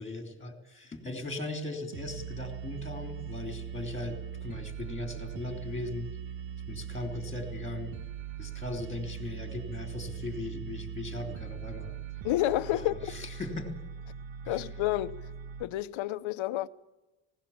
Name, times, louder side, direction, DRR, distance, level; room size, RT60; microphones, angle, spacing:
voice 1, 0.0-6.1 6.7-7.9 8.4-11.9 12.7-13.7 14.4-14.6, left 2 dB, 15° left, 3.0 m, -38 dB
sound 1, 1.9-15.6, right 8 dB, 65° right, 1.5 m, -41 dB
voice 2, 12.2-13.0 14.5-15.2 15.6-16.7, left 15 dB, 75° left, 0.9 m, -29 dB
19.0 x 17.0 x 8.5 m
cardioid pair, 145°, 48 cm